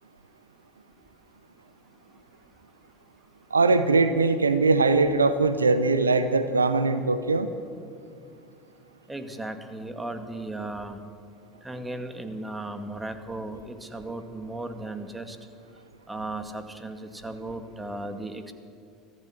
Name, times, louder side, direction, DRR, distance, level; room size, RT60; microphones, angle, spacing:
voice 1, 3.5-7.5, right 3 dB, 80° right, 12 dB, 0.8 m, -21 dB
voice 2, 9.1-11.0 11.6-15.4 16.1-18.5, right 2 dB, 10° right, 8 dB, 2.0 m, -36 dB
24.0 x 15.5 x 7.4 m, 2.4 s
figure-of-eight pair, 70°, 0 cm